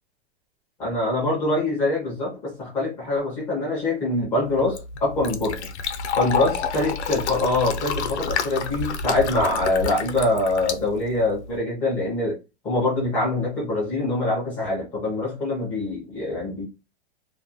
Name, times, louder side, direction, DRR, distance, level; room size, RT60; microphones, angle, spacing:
voice 1, 0.8-5.7 6.2-16.7, left 2 dB, 5° left, 0.3 m, -24 dB
Fill (with liquid), 4.5-11.6, left 5 dB, 85° left, 0.7 m, -29 dB
2.4 x 2.3 x 2.7 m
supercardioid pair, 165°, 33 cm